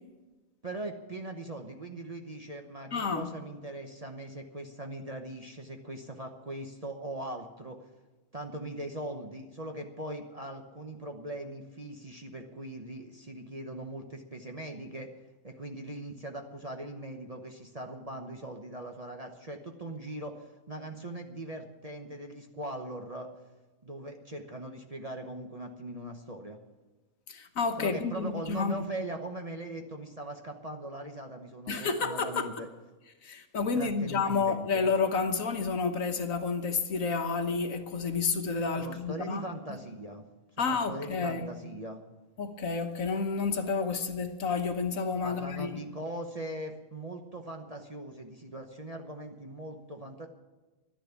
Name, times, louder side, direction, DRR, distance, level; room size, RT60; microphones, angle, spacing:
voice 1, 0.6-7.8 8.3-15.1 15.4-23.3 23.8-26.6 27.8-32.7 33.7-34.8 38.7-40.2 40.6-42.0 45.2-50.3, right 1 dB, 30° right, 4 dB, 1.0 m, -40 dB
voice 2, 2.9-3.3 27.3-28.9 31.7-32.5 33.2-39.4 39.7-39.8 40.6-41.5 42.4-45.8, left 4 dB, 65° left, 6 dB, 1.5 m, -30 dB
12.0 x 10.5 x 8.3 m, 1.2 s
omnidirectional pair, 1.6 m